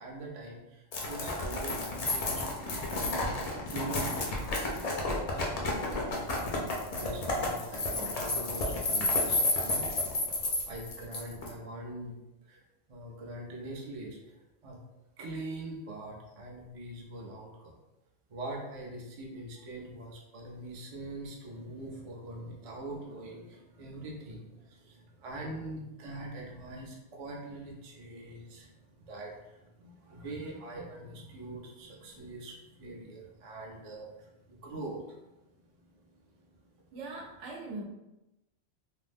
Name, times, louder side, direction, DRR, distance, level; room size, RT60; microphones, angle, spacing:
voice 1, 0.0-3.4 3.7-4.6 4.9-6.1 6.9-10.0 10.7-14.8 15.2-17.8 18.3-35.3 35.6-36.5, right 2 dB, 50° right, -1 dB, 0.4 m, -43 dB
sound 1, 0.9-11.5, left 2 dB, 55° left, 0.4 m, -31 dB
voice 2, 36.9-37.8, right 2 dB, 80° right, 0 dB, 0.9 m, -40 dB
2.5 x 2.0 x 3.3 m, 0.97 s
omnidirectional pair, 1.2 m